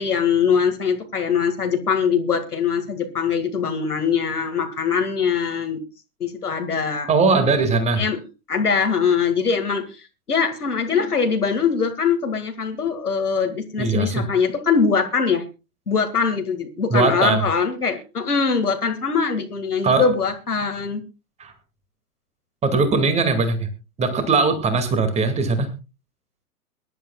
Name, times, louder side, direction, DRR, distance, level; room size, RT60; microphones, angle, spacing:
voice 1, 0.0-5.8 6.2-7.1 8.0-8.2 8.5-15.4 15.9-21.0, left 6 dB, 75° left, 5 dB, 2.1 m, -22 dB
voice 2, 7.1-8.0 13.8-14.2 16.9-17.4 19.8-20.1 21.4-21.5 22.6-23.7 24.0-25.7, right 4 dB, 15° right, 9 dB, 2.2 m, -20 dB
23.0 x 11.0 x 2.3 m, 0.29 s
figure-of-eight pair, 110°, 46 cm